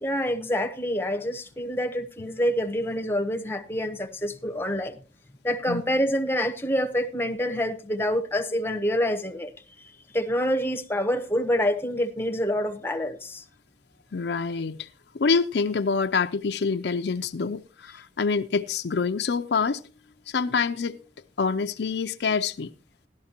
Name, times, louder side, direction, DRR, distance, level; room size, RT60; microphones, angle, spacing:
voice 1, 0.0-5.0 5.4-9.5 9.8-13.4, equal, 10° left, 0.8 m, -27 dB
voice 2, 14.1-14.9 15.1-19.8 20.3-21.0 21.4-22.7, left 5 dB, 65° left, 0.5 m, -26 dB
16.5 x 12.0 x 2.9 m
head